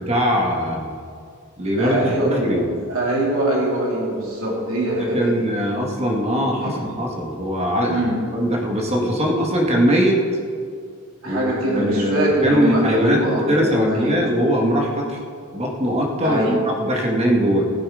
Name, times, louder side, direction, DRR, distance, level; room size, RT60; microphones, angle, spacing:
voice 1, 0.1-0.9 1.6-2.7 5.0-8.0 8.3-10.2 11.2-15.2 15.5-17.6, equal, 30° right, 0 dB, 1.9 m, -21 dB
voice 2, 1.8-2.3 2.9-5.4 6.3-6.9 7.9-8.2 11.2-14.2 16.2-16.6, right 1 dB, 70° right, -4 dB, 3.1 m, -23 dB
16.0 x 7.8 x 5.1 m, 2.2 s
head